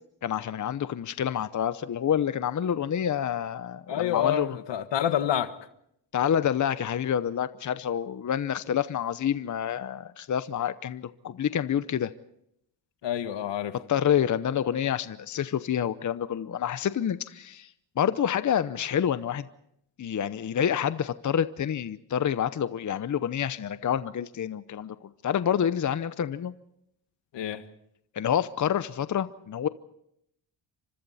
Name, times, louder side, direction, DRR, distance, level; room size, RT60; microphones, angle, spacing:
voice 1, 0.2-4.6 6.1-12.1 13.7-17.7 18.0-19.5 20.0-25.0 25.2-26.5 28.1-29.7, left 9 dB, 45° left, 0.8 m, -28 dB
voice 2, 3.9-5.6 13.0-13.7 27.3-27.6, left 10 dB, 80° left, 1.5 m, -28 dB
29.5 x 25.5 x 4.2 m
cardioid pair, 95°, 42 cm